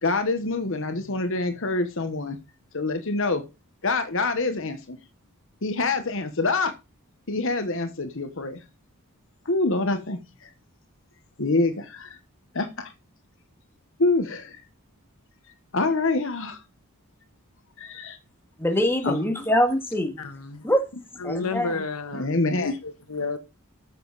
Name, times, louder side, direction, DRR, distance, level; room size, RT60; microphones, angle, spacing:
voice 1, 0.0-2.4 2.7-3.4 3.8-5.0 5.6-6.7 7.3-8.6 9.4-10.5 11.4-12.2 12.5-12.9 14.0-14.6 15.7-16.6 17.8-18.2 19.0-19.2 22.1-22.7, left 3 dB, 60° left, 1.2 m, -26 dB
voice 2, 18.6-20.2 20.6-20.8 21.2-21.7, equal, 10° left, 2.1 m, -23 dB
voice 3, 20.2-20.6 21.2-23.4, left 3 dB, 85° left, 1.4 m, -32 dB
13.5 x 7.3 x 4.1 m
head